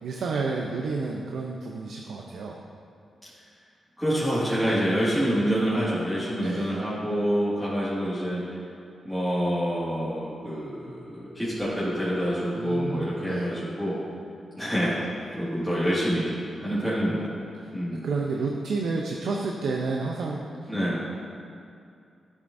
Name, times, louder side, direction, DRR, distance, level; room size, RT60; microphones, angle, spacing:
voice 1, 0.0-2.6 6.4-6.7 12.6-13.5 16.6-17.0 18.0-20.5, right 4 dB, 90° right, -1 dB, 0.6 m, -30 dB
voice 2, 4.0-8.4 9.0-14.0 14.6-15.0 15.4-17.3 17.7-18.1 20.7-21.0, equal, 5° right, -12 dB, 1.9 m, -27 dB
12.0 x 7.3 x 2.6 m, 2.5 s
cardioid pair, 100°, 0 cm